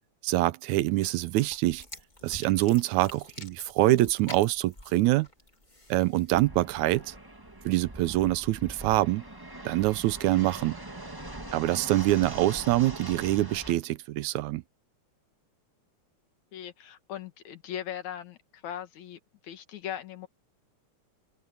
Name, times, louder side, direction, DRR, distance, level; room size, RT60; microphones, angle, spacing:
voice 1, 0.2-1.8 2.2-5.3 5.9-7.1 7.7-9.2 9.7-10.8 11.5-14.6, right 17 dB, 85° right, 2.0 m, -25 dB
sound 1, 1.0-6.4, left 2 dB, 15° left, 2.9 m, -48 dB
Fixed-wing aircraft airplane, 6.3-13.7, right 1 dB, 10° right, 1.3 m, -42 dB
voice 2, 16.5-20.3, left 10 dB, 80° left, 2.9 m, -39 dB
open air
omnidirectional pair, 3.3 m